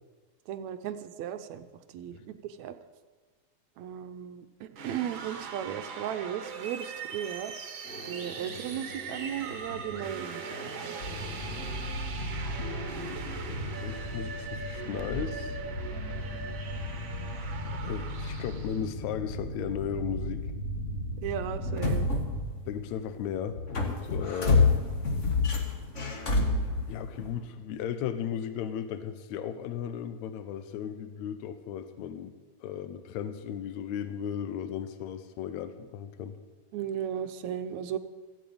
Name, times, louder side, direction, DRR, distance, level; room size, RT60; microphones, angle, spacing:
voice 1, 0.5-1.7 1.9-2.7 3.8-4.5 4.8-7.5 8.1-11.0 21.2-22.1 36.7-38.0, right 10 dB, 75° right, 10 dB, 1.9 m, -36 dB
sound 1, 4.7-18.9, right 5 dB, 50° right, 1.7 m, -41 dB
sound 2, 7.8-14.4, right 1 dB, 5° left, 2.1 m, -45 dB
sound 3, 11.0-23.1 23.5-27.4, left 3 dB, 35° left, 1.3 m, -31 dB
voice 2, 12.6-13.4 13.8-15.6 17.3-20.5 22.7-24.7 26.9-32.3 32.6-36.4, left 9 dB, 75° left, 10 dB, 2.1 m, -36 dB
14.5 x 8.4 x 8.6 m, 1.4 s
omnidirectional pair, 3.5 m